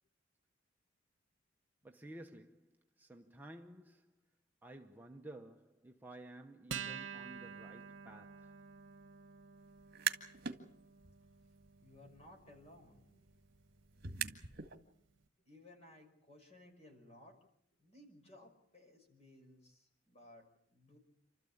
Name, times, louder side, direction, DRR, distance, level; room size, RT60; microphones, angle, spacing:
voice 1, 1.8-2.7 3.0-4.1 4.6-8.5, right 1 dB, 10° right, 0.9 m, -53 dB
Acoustic guitar, 6.7-13.5, right 7 dB, 70° right, 1.1 m, -49 dB
sound 1, 9.8-10.6 11.0-14.7, right 8 dB, 55° right, 2.0 m, -43 dB
voice 2, 11.8-13.1 15.5-17.4 17.8-21.0, left 1 dB, 35° left, 5.8 m, -60 dB
28.5 x 13.5 x 8.7 m
head